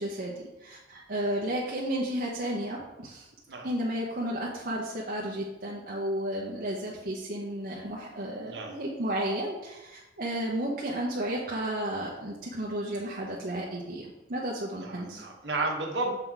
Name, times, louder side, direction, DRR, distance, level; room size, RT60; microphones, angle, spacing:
voice 1, 0.0-3.3 3.6-15.2, right 1 dB, 55° right, -3 dB, 0.8 m, -33 dB
voice 2, 8.4-8.8 14.8-16.1, right 2 dB, 70° right, 1 dB, 1.2 m, -32 dB
6.8 x 3.9 x 4.6 m, 1.0 s
head